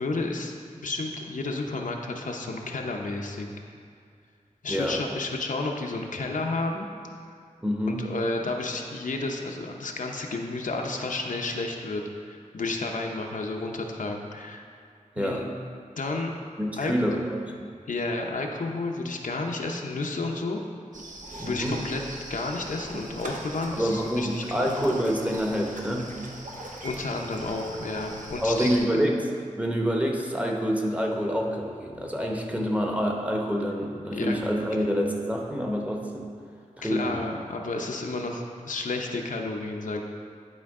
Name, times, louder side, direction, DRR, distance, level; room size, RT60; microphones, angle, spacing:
voice 1, 0.0-3.5 4.6-6.9 7.9-14.6 15.2-15.5 16.0-16.3 16.7-16.9 17.9-20.6 21.4-22.0 22.3-24.7 26.8-29.0 33.8-34.3 36.8-40.0, left 3 dB, 75° left, 1 dB, 0.7 m, -31 dB
voice 2, 4.7-5.0 7.6-8.0 15.1-15.4 16.6-17.7 21.4-21.8 23.7-26.1 28.4-29.2 29.6-36.3 36.8-37.2, equal, 10° right, 0 dB, 0.9 m, -27 dB
sound 1, 20.9-28.8, right 1 dB, 70° right, 1.0 m, -41 dB
11.0 x 4.5 x 3.6 m, 2.3 s
wide cardioid pair, 75°, 14 cm